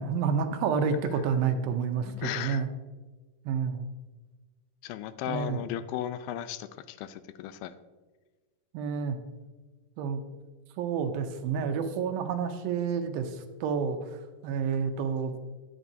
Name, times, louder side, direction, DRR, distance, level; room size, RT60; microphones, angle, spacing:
voice 1, 0.0-2.7 3.5-3.9 5.3-5.6 8.7-9.2 10.0-10.2 10.8-14.0 14.4-15.3, right 6 dB, 85° right, 7 dB, 2.5 m, -29 dB
voice 2, 2.0-2.6 4.8-7.7, left 11 dB, 85° left, 12 dB, 2.3 m, -36 dB
11.0 x 8.7 x 2.7 m, 1.3 s
omnidirectional pair, 4.2 m